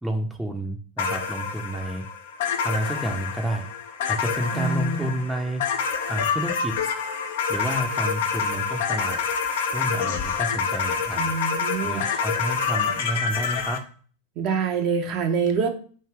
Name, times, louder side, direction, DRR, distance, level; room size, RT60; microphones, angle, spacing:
voice 1, 0.0-2.0 2.6-3.6 4.1-5.6 6.1-6.8 7.5-9.2 9.7-11.3 11.8-13.8, right 1 dB, 5° right, 2 dB, 0.7 m, -30 dB
sound 1, 1.0-13.8, left 6 dB, 60° left, 0.6 m, -27 dB
voice 2, 4.5-5.1 11.2-12.2 14.4-15.7, right 5 dB, 45° right, 4 dB, 0.8 m, -26 dB
3.4 x 2.7 x 4.5 m, 0.42 s
figure-of-eight pair, 90°, 0 cm